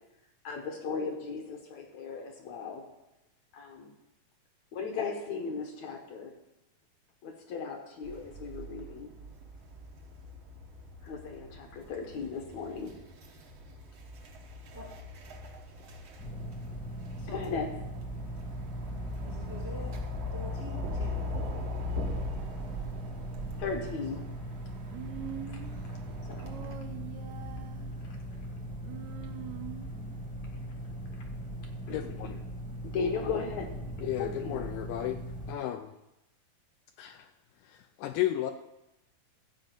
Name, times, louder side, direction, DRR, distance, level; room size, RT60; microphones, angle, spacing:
voice 1, 0.4-2.9 3.5-3.9 4.7-6.3 7.2-9.1 11.0-12.9 17.3-17.7 23.6-24.2 25.5-25.6 26.2-26.5 28.0-28.2 31.2-31.3 31.9-32.4 32.8-33.7 34.0-34.7, left 5 dB, 65° left, 3 dB, 2.0 m, -36 dB
sound 1, 8.0-26.8, left 2 dB, 65° right, 1.2 m, -41 dB
sound 2, 16.2-35.5, equal, 5° right, 0.8 m, -40 dB
voice 2, 17.1-17.5 19.2-20.0 20.3-21.3 24.1-24.2, equal, 45° right, -1 dB, 0.8 m, -45 dB
Human voice, 24.9-25.9 26.4-28.0 28.8-30.1, right 10 dB, 80° right, 1.6 m, -44 dB
voice 3, 31.9-32.4 34.0-35.2 35.5-35.9 37.0-37.2 38.0-38.5, left 13 dB, 80° left, 7 dB, 2.0 m, -33 dB
14.5 x 5.2 x 7.4 m, 0.94 s
omnidirectional pair, 4.2 m